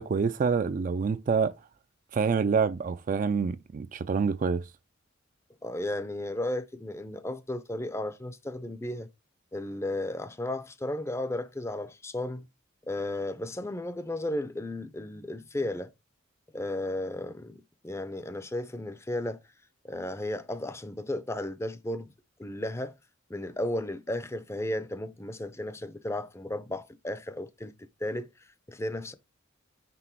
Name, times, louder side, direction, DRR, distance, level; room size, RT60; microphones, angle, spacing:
voice 1, 0.0-1.5 2.1-4.7, right 5 dB, 40° right, 0.3 m, -27 dB
voice 2, 5.6-9.1 9.5-12.5 12.9-15.9 16.5-19.4 19.8-22.1 22.4-22.9 23.3-28.3 28.7-29.1, left 1 dB, 15° left, 0.5 m, -34 dB
6.1 x 3.4 x 4.5 m
head